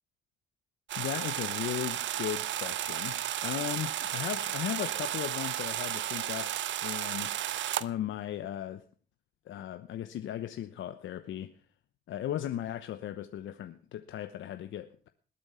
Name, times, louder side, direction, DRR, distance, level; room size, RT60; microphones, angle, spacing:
sound 1, 0.9-7.8, right 12 dB, 70° right, 0.8 m, -33 dB
voice 1, 1.0-6.5 6.8-7.3 7.8-8.8 9.5-11.6 12.1-15.1, left 11 dB, 75° left, 9 dB, 1.0 m, -37 dB
20.0 x 8.7 x 5.6 m, 0.42 s
cardioid pair, 90°, 20 cm